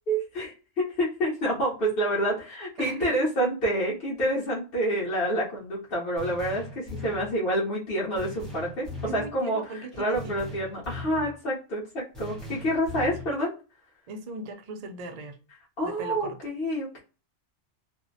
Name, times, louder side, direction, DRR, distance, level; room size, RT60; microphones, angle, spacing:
voice 1, 0.1-8.9 9.1-9.6 10.0-13.5 15.8-17.0, right 1 dB, 55° left, 0.9 m, -28 dB
voice 2, 2.8-3.2 9.0-10.5 13.1-13.3 14.1-15.4 15.8-16.4, right 2 dB, 85° right, 0.3 m, -38 dB
sound 1, 6.2-7.4 8.2-9.3 10.1-11.4 12.1-13.4, left 1 dB, ahead, 0.7 m, -39 dB
2.6 x 2.0 x 2.5 m
omnidirectional pair, 1.3 m